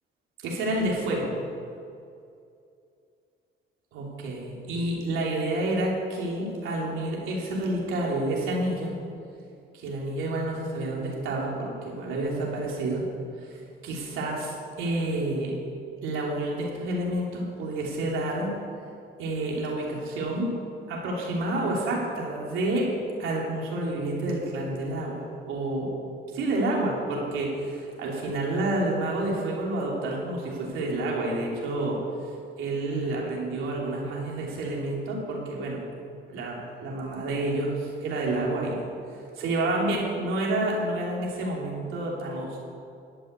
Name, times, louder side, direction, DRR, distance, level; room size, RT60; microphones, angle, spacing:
voice 1, 0.4-1.3 3.9-8.9 9.7-13.1 13.4-15.5 16.0-18.6 19.2-20.5 20.9-22.9 23.2-25.9 26.3-32.0 32.6-35.8 36.3-38.8 39.4-42.6, right 2 dB, 90° right, -2 dB, 3.0 m, -29 dB
13.0 x 5.9 x 9.5 m, 2.4 s
cardioid pair, 90°, 20 cm